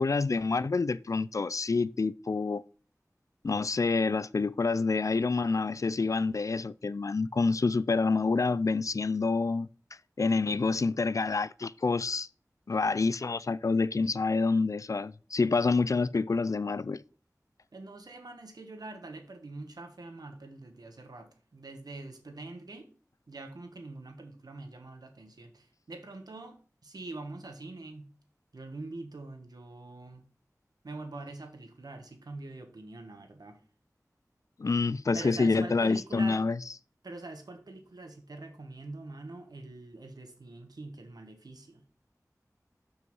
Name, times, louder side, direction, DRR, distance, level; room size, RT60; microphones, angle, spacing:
voice 1, 0.0-2.6 3.4-9.7 10.2-12.3 12.7-17.0 34.6-36.6, left 4 dB, 55° left, 0.3 m, -27 dB
voice 2, 17.7-22.9 23.3-28.1 28.5-30.2 30.8-33.6 35.1-36.4 37.0-41.8, right 2 dB, 90° right, 1.3 m, -44 dB
6.2 x 5.5 x 5.4 m
wide cardioid pair, 40°, 6 cm